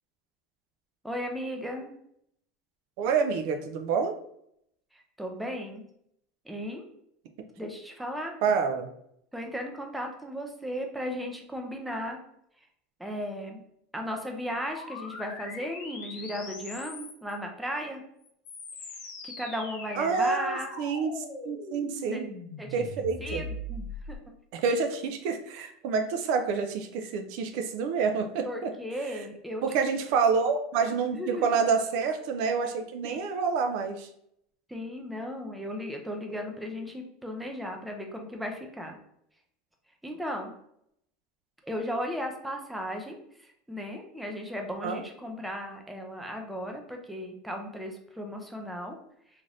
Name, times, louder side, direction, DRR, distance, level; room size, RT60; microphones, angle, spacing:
voice 1, 1.0-1.9 4.9-5.9 6.5-6.9 7.6-8.3 9.3-12.2 13.0-13.6 13.9-18.0 19.2-20.7 22.1-22.2 22.6-22.8 23.2-24.3 28.4-29.6 31.1-31.5 33.0-33.2 34.7-39.0 40.0-40.5 41.6-49.0, equal, 5° right, 2 dB, 0.5 m, -36 dB
voice 2, 3.0-4.1 8.4-8.9 20.0-22.3 22.7-23.4 24.5-28.7 29.6-34.1 44.8-45.0, right 5 dB, 65° right, 6 dB, 0.4 m, -28 dB
sound 1, 14.7-17.4 18.2-24.2, left 2 dB, 55° left, 0.7 m, -41 dB
2.6 x 2.5 x 3.2 m, 0.73 s
supercardioid pair, 135°, 0 cm